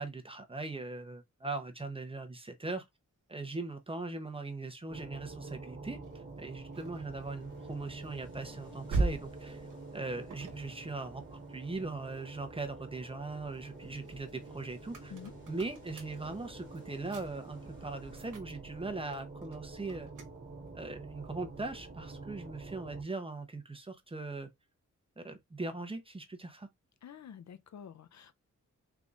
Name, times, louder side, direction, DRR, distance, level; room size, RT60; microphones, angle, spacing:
voice 1, 0.0-2.8 3.3-6.0 6.4-9.6 9.9-15.1 15.5-20.1 20.7-24.5 25.2-26.7, right 3 dB, 20° right, 0.7 m, -40 dB
sound 1, 4.9-23.0, right 3 dB, 35° right, 1.1 m, -48 dB
sound 2, 6.0-12.6 13.0-22.8, right 3 dB, 90° right, 1.0 m, -43 dB
sound 3, 7.0-18.4, left 2 dB, 40° left, 2.4 m, -58 dB
voice 2, 27.0-28.3, left 8 dB, 65° left, 0.5 m, -48 dB
3.9 x 3.5 x 2.4 m
wide cardioid pair, 145°, 31 cm